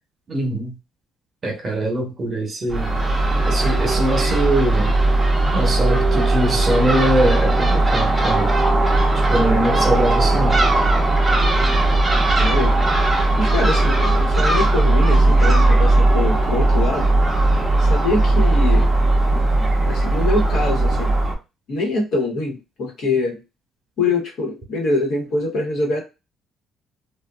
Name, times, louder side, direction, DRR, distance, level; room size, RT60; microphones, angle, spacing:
voice 1, 0.3-0.7 1.4-2.9 3.4-5.0 5.5-8.5 9.3-10.6, right 1 dB, 40° right, 1.1 m, -22 dB
Crow / Gull seagull, 2.7-21.3, right 2 dB, 15° right, 0.7 m, -17 dB
voice 2, 9.4-9.9 12.4-12.8 13.4-17.1 17.8-18.9 19.3-21.1 21.7-23.4 24.0-26.0, left 2 dB, 65° left, 1.3 m, -24 dB
2.6 x 2.4 x 2.3 m
cardioid pair, 100°, 0 cm